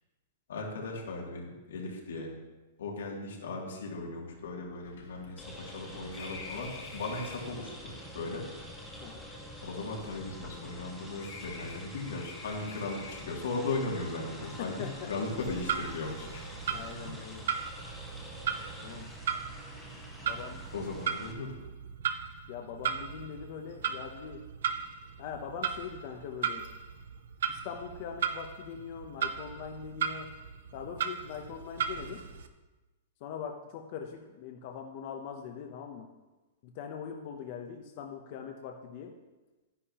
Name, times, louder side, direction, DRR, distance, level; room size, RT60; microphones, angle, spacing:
voice 1, 0.5-2.3 2.8-8.5 9.6-16.6 17.0-17.1 18.5-18.7 20.7-21.5, left 3 dB, 90° left, -1 dB, 2.5 m, -37 dB
sound 1, 4.3-7.6 8.4-10.8 11.2-13.5, left 4 dB, 60° left, 2.3 m, -49 dB
sound 2, 5.4-21.3, equal, ahead, 1.0 m, -46 dB
voice 2, 14.4-15.1 16.7-17.5 18.8-19.1 20.3-20.6 22.5-24.4 25.2-26.6 27.5-30.3 30.7-32.2 33.2-36.1 36.6-39.1, left 7 dB, 35° left, 3 dB, 0.6 m, -42 dB
Clock, 15.3-32.5, right 7 dB, 60° right, 0.7 m, -37 dB
11.5 x 9.9 x 2.9 m, 1.1 s
supercardioid pair, 180°, 0 cm